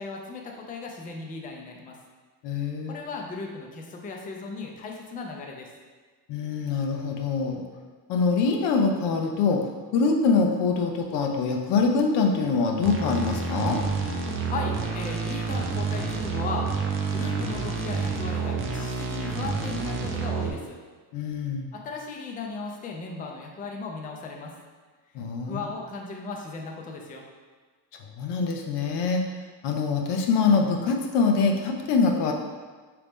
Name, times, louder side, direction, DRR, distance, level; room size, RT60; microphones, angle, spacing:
voice 1, 0.0-2.0 2.9-5.7 14.4-16.7 17.1-20.8 21.7-24.5 25.4-27.2, left 3 dB, 20° left, 1 dB, 0.4 m, -36 dB
voice 2, 2.4-3.0 6.3-7.6 8.1-9.7 9.9-13.8 21.1-21.7 25.1-25.6 28.2-29.2 29.6-32.3, left 4 dB, 85° left, 2 dB, 0.7 m, -24 dB
sound 1, 12.8-20.5, right 4 dB, 30° right, 0.5 m, -29 dB
4.9 x 3.0 x 3.5 m, 1.4 s
cardioid pair, 150°, 40 cm